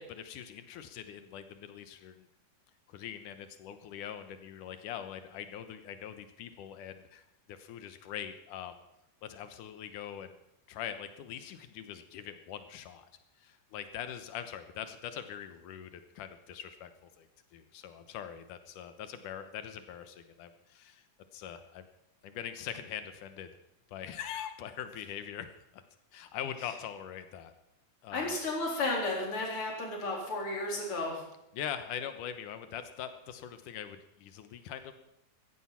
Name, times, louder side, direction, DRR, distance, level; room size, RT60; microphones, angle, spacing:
voice 1, 0.0-2.3 2.9-7.2 7.5-8.8 9.2-10.4 10.7-13.1 13.4-21.0 21.3-21.9 22.2-23.5 23.9-25.5 25.7-25.8 26.1-27.5 28.0-28.4 31.5-34.9, left 9 dB, 80° left, 9 dB, 2.5 m, -42 dB
voice 2, 28.1-31.2, left 2 dB, 40° left, -1 dB, 4.6 m, -33 dB
15.5 x 14.5 x 5.8 m, 0.84 s
omnidirectional pair, 3.7 m